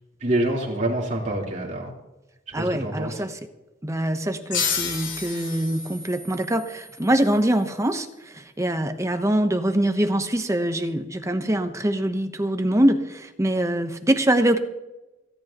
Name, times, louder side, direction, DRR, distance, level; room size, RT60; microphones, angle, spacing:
voice 1, 0.2-1.9 2.6-3.2, right 1 dB, 40° right, -2 dB, 3.7 m, -26 dB
voice 2, 2.5-3.4 3.8-8.1 8.3-14.6, right 1 dB, 15° right, 7 dB, 0.9 m, -23 dB
sound 1, 4.5-7.7, left 6 dB, 80° left, 2.7 m, -31 dB
29.0 x 10.5 x 3.0 m, 1.0 s
head